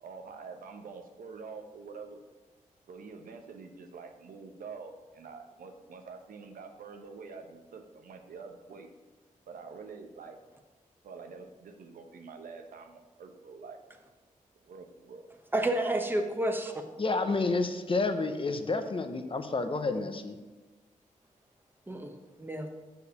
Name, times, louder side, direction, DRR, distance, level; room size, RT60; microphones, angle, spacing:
voice 1, 0.0-2.2 2.9-8.9 9.5-10.4 11.0-13.8 14.6-15.3, right 5 dB, 85° right, 5 dB, 0.9 m, -46 dB
voice 2, 15.5-16.7 21.9-22.1 22.4-22.7, right 1 dB, 15° right, 4 dB, 1.1 m, -29 dB
voice 3, 17.0-20.4, left 3 dB, 40° left, 8 dB, 0.9 m, -30 dB
6.6 x 4.9 x 6.6 m, 1.2 s
cardioid pair, 60°, 14 cm